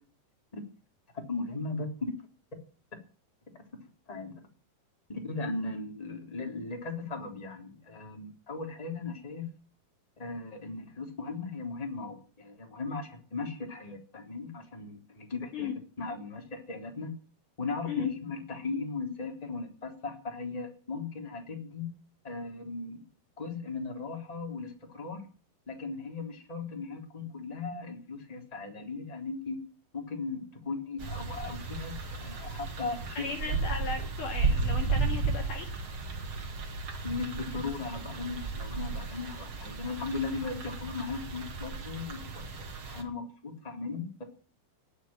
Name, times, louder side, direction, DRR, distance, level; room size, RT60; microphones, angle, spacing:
voice 1, 1.3-2.1 4.1-4.3 5.1-9.4 10.2-17.1 17.6-21.8 22.2-23.0 23.4-25.2 25.7-29.6 29.9-33.6 37.0-44.2, left 4 dB, 10° left, 3 dB, 3.1 m, -37 dB
sound 1, 31.0-43.0, right 4 dB, 35° right, 2.6 m, -34 dB
voice 2, 33.1-35.7, left 5 dB, 55° left, 4 dB, 3.2 m, -36 dB
19.0 x 8.3 x 9.0 m, 0.40 s
omnidirectional pair, 5.0 m